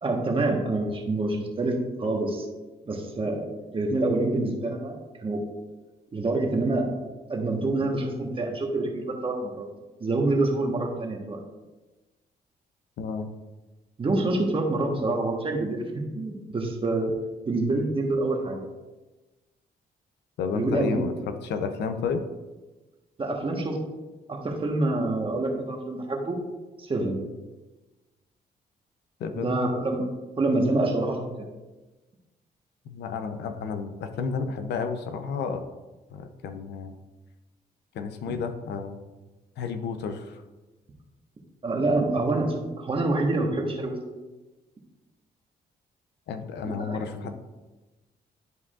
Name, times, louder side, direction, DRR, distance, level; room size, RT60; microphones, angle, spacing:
voice 1, 0.0-2.5 2.9-5.5 6.1-6.9 7.3-9.7 10.0-11.4 14.0-17.1 17.4-18.6 20.5-21.0 23.2-23.9 24.3-26.4 26.8-27.2 29.3-30.1 30.4-31.5 38.2-38.3 41.6-44.0 46.6-47.0, right 2 dB, 30° right, 1 dB, 1.3 m, -27 dB
voice 2, 13.0-13.3 20.4-21.1 21.4-22.2 29.2-29.6 32.9-35.6 36.1-37.0 37.9-39.0 39.6-40.4 46.3-47.3, left 5 dB, 90° left, 8 dB, 0.7 m, -31 dB
11.0 x 4.7 x 2.5 m, 1.2 s
cardioid pair, 100°, 17 cm